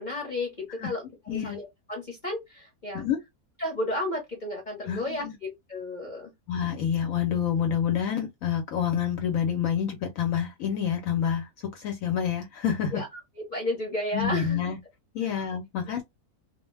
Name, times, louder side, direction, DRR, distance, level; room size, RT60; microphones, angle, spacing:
voice 1, 0.0-3.0 3.6-6.3 12.9-14.6 15.2-15.5, left 1 dB, 40° left, 0.8 m, -33 dB
voice 2, 1.3-1.6 2.9-3.2 4.9-5.3 6.5-13.0 14.1-14.8 15.1-16.0, left 8 dB, 70° left, 0.9 m, -28 dB
2.4 x 2.1 x 3.1 m
omnidirectional pair, 1.6 m